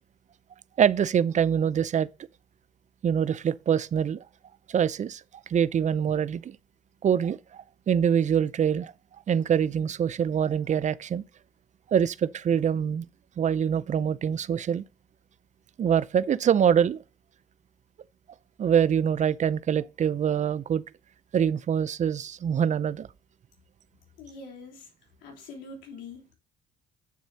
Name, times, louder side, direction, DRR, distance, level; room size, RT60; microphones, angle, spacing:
voice 1, 0.8-2.1 3.0-4.2 4.7-5.2 5.5-6.6 7.0-8.9 9.3-11.2 11.9-13.1 13.4-14.8 15.8-17.0 18.6-20.8 21.3-23.1, right 8 dB, 40° right, 0.5 m, -24 dB
voice 2, 24.2-24.9 25.2-26.4, left 3 dB, 80° left, 3.4 m, -44 dB
8.6 x 7.2 x 2.8 m
supercardioid pair, 65°, 19 cm